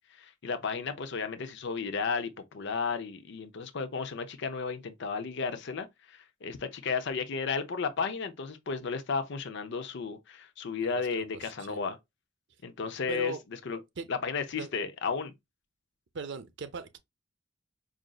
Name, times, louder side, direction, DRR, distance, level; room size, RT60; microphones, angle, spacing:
voice 1, 0.2-12.0 12.6-13.3 13.7-13.8 14.1-15.3, left 5 dB, 60° left, 0.5 m, -33 dB
voice 2, 10.8-11.8 13.1-13.4 14.0-14.1 14.5-14.7 16.1-17.0, right 4 dB, 65° right, 0.6 m, -39 dB
5.0 x 2.5 x 2.3 m
head